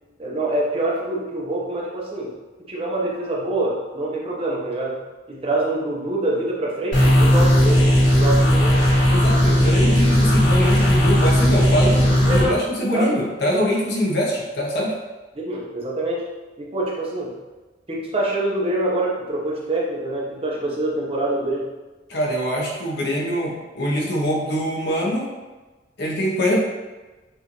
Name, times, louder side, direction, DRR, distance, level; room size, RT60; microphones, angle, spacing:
voice 1, 0.2-2.3 2.7-5.0 5.3-8.8 12.3-12.6 12.9-13.1 15.3-16.3 16.6-17.3 17.9-21.7, right 2 dB, 30° right, -4 dB, 0.9 m, -25 dB
sound 1, 6.9-12.5, equal, 90° left, 1.5 m, -16 dB
voice 2, 9.1-15.0 22.1-25.3 26.0-26.6, equal, 60° left, -2 dB, 1.0 m, -23 dB
6.2 x 2.6 x 3.1 m, 1.2 s
head